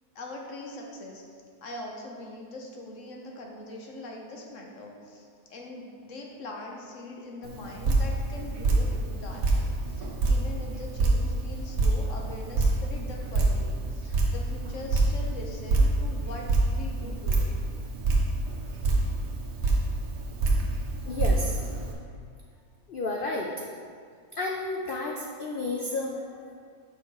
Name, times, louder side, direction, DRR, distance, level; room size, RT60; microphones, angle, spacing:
voice 1, 0.1-1.2 1.6-17.6, left 2 dB, 60° left, 0 dB, 1.1 m, -42 dB
Drip, 7.4-21.9, right 2 dB, 70° right, 1.5 m, -27 dB
voice 2, 21.1-21.6 22.9-23.5 24.3-26.5, left 2 dB, 75° left, 0 dB, 0.5 m, -32 dB
5.8 x 5.7 x 4.7 m, 2.1 s
omnidirectional pair, 1.7 m